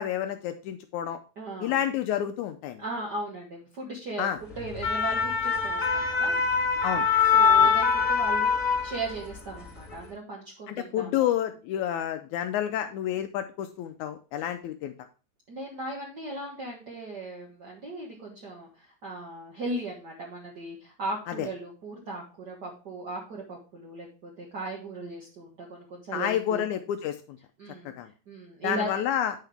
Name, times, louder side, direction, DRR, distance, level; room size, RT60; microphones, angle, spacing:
voice 1, 0.0-1.2 1.6-2.8 4.2-4.4 6.8-7.1 7.6-7.7 10.7-14.9 21.4-21.5 26.1-27.4 27.8-28.1 28.6-29.3, left 10 dB, 85° left, 8 dB, 1.7 m, -29 dB
voice 2, 1.4-1.8 2.8-4.3 4.6-6.4 7.3-11.3 15.5-26.7 27.6-27.9 28.3-29.0, right 2 dB, 60° right, -2 dB, 1.1 m, -37 dB
sound 1, 4.6-9.3 9.7-9.9, left 6 dB, 30° left, 1.5 m, -23 dB
9.0 x 5.7 x 3.4 m, 0.35 s
omnidirectional pair, 4.0 m